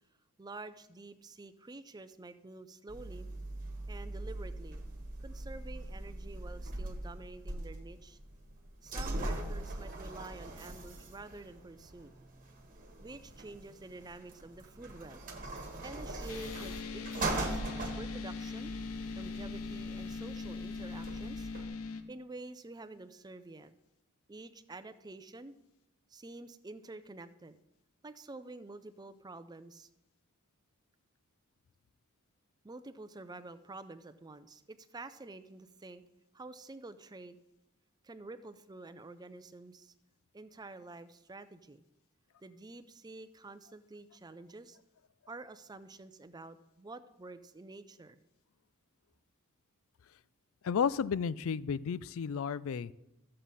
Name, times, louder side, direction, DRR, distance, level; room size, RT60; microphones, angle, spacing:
voice 1, 0.4-3.3 3.9-4.8 5.2-8.2 8.8-12.1 13.0-15.2 15.8-17.6 18.0-18.7 19.2-21.5 22.1-23.7 24.3-25.5 26.1-27.6 28.0-29.9 32.6-36.0 36.3-37.4 38.0-39.9 40.3-41.8 42.4-44.8 45.3-48.2, right 2 dB, 20° right, 12 dB, 0.5 m, -48 dB
sound 1, 2.9-21.7, right 2 dB, 40° right, 1.5 m, -41 dB
sound 2, 16.3-22.0, left 4 dB, 85° left, 0.8 m, -41 dB
voice 2, 50.6-52.9, left 6 dB, 65° left, 18 dB, 0.4 m, -32 dB
13.5 x 7.7 x 4.1 m, 0.91 s
head